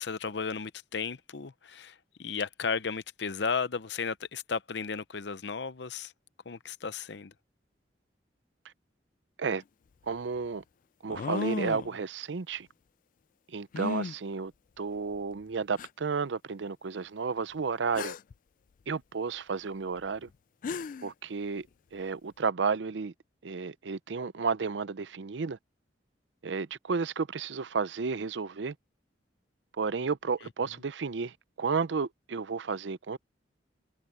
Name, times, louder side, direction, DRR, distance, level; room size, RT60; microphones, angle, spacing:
voice 1, 0.0-6.1 6.5-7.3, left 5 dB, 70° left, 0.8 m, -34 dB
sound 1, 9.6-9.7 11.1-12.0 13.7-14.1 15.1-15.2 15.8-15.9 17.9-18.3 20.3-20.4 20.6-21.1, left 5 dB, 50° left, 0.3 m, -34 dB
voice 2, 10.0-10.6 11.0-12.7 13.5-14.5 14.8-18.2 18.9-20.3 21.0-21.7 21.9-23.1 23.4-25.6 26.4-28.8 29.8-33.2, right 5 dB, 80° right, 0.6 m, -32 dB
head